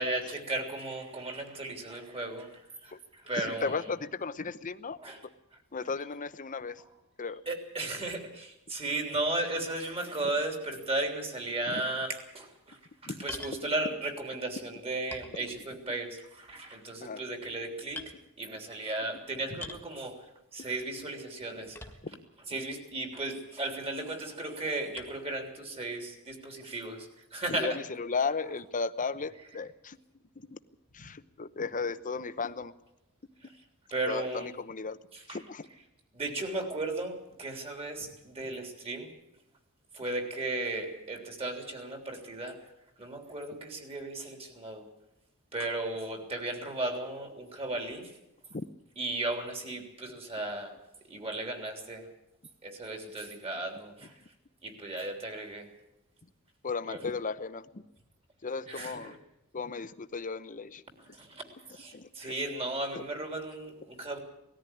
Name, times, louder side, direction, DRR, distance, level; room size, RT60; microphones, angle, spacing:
voice 1, 0.0-3.8 5.0-5.2 7.4-18.0 18.4-20.2 20.5-21.8 22.5-27.8 31.0-31.1 33.4-33.6 33.9-34.5 35.1-35.4 36.1-39.1 39.9-42.6 43.0-44.9 45.5-48.2 49.0-50.8 51.1-52.1 52.6-54.2 54.6-55.7 56.9-57.0 58.7-59.2 61.0-64.2, right 2 dB, 30° right, 4 dB, 3.3 m, -35 dB
voice 2, 3.4-5.0 5.7-6.8 7.2-7.4 13.0-13.2 17.0-17.2 22.0-22.2 27.6-30.0 30.5-30.6 30.9-32.7 34.1-35.0 35.3-35.6 48.5-48.7 56.6-57.8 58.4-59.1 59.5-60.8 61.9-62.3, left 4 dB, 40° left, 13 dB, 0.8 m, -35 dB
sound 1, 13.3-13.6 14.5-14.6 15.1-15.9 16.3-16.7 17.3-17.6 17.9-18.1 19.6-19.9 21.7-22.3 23.0-23.1 25.0-25.2, left 2 dB, 10° left, 1.8 m, -44 dB
19.0 x 14.0 x 10.0 m, 0.90 s
head